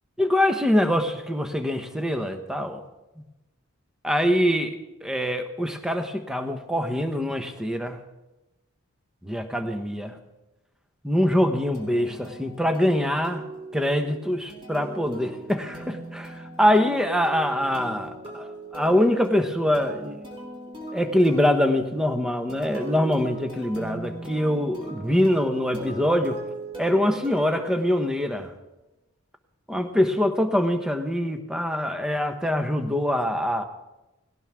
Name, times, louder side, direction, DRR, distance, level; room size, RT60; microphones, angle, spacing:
voice 1, 0.2-2.8 4.0-4.7 5.0-8.0 9.2-10.2 11.0-13.4 13.7-20.2 20.9-26.4 26.8-28.5 29.7-33.6, left 1 dB, 5° right, 6 dB, 1.1 m, -24 dB
sound 1, 11.7-28.4, right 2 dB, 25° right, 3.5 m, -39 dB
18.5 x 17.5 x 3.7 m, 0.99 s
head